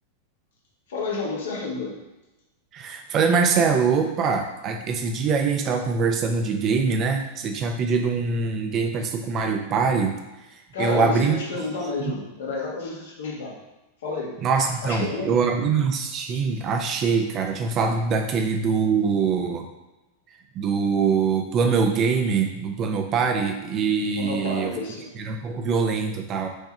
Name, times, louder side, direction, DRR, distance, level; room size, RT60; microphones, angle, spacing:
voice 1, 0.9-2.0 10.7-13.5 14.0-14.4 14.8-15.4 18.3-18.4 24.2-25.1, left 3 dB, 60° left, -2 dB, 1.5 m, -30 dB
voice 2, 2.7-10.2 10.8-11.4 14.4-19.7 20.5-24.7 25.1-26.5, right 5 dB, 35° right, 4 dB, 0.9 m, -23 dB
6.6 x 3.5 x 4.3 m, 1.0 s
figure-of-eight pair, 90°, 0 cm